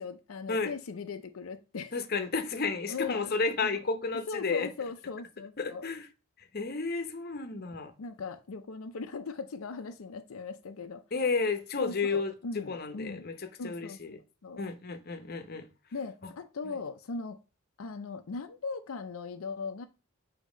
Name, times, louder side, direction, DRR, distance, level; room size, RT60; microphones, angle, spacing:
voice 1, 0.0-1.9 2.9-3.4 3.6-3.8 4.3-5.9 8.0-11.0 11.8-13.2 13.6-14.6 15.9-17.4 17.8-19.9, left 4 dB, 85° left, 0.5 m, -39 dB
voice 2, 1.9-4.7 5.6-6.1 6.5-7.9 11.1-12.3 12.7-13.3 13.6-14.2 14.6-15.7 16.6-16.7, left 4 dB, 45° left, 0.8 m, -32 dB
7.2 x 2.8 x 5.0 m
head